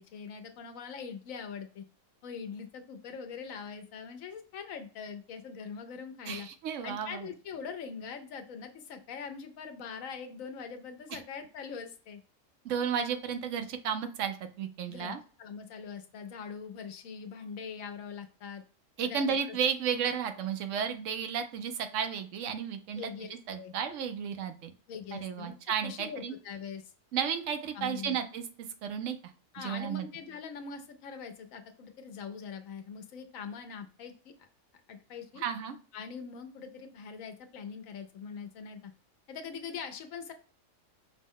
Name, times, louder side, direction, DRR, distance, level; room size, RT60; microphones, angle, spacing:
voice 1, 0.0-1.8 2.2-6.5 6.8-12.2 14.9-18.6 19.0-19.6 22.9-23.7 24.9-25.5 25.8-26.9 27.7-28.2 29.5-34.5 34.9-35.4 35.9-38.9 39.3-40.3, left 6 dB, 90° left, 6 dB, 1.1 m, -42 dB
voice 2, 6.3-7.3 11.1-11.2 12.6-15.2 19.0-24.7 25.1-26.3 27.1-28.4 28.8-29.2 29.6-30.1 35.4-35.8, right 7 dB, 75° right, 8 dB, 0.9 m, -33 dB
5.1 x 2.1 x 3.6 m, 0.40 s
omnidirectional pair, 1.4 m